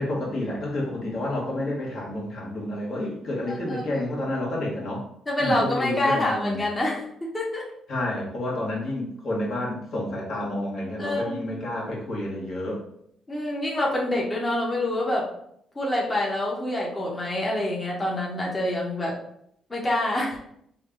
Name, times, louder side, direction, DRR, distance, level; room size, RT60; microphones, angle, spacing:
voice 1, 0.0-5.1 5.4-6.6 7.9-12.8, left 1 dB, 60° left, -4 dB, 1.4 m, -29 dB
voice 2, 3.5-3.8 5.3-7.7 11.0-11.5 13.3-15.3 15.7-19.1 19.7-20.4, left 1 dB, 25° left, -3 dB, 0.9 m, -26 dB
3.3 x 2.3 x 3.7 m, 0.72 s
cardioid pair, 90°, 0 cm